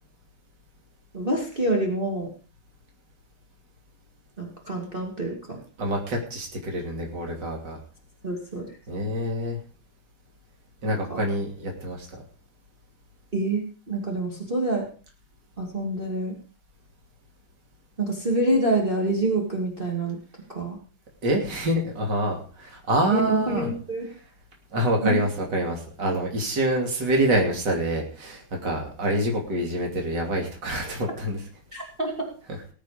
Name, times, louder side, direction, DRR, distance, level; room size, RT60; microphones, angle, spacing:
voice 1, 1.1-2.3 4.4-5.6 8.2-8.7 11.1-11.2 13.3-14.9 15.6-16.4 18.0-20.2 20.5-20.8 23.1-24.1 25.0-25.2 31.7-32.3, right 2 dB, 25° right, -1 dB, 2.8 m, -26 dB
voice 2, 5.8-7.8 8.9-9.6 10.8-12.1 21.2-23.7 24.1-24.2 24.7-31.4, right 1 dB, 55° right, 1 dB, 3.4 m, -26 dB
19.5 x 8.2 x 5.1 m, 0.41 s
omnidirectional pair, 2.3 m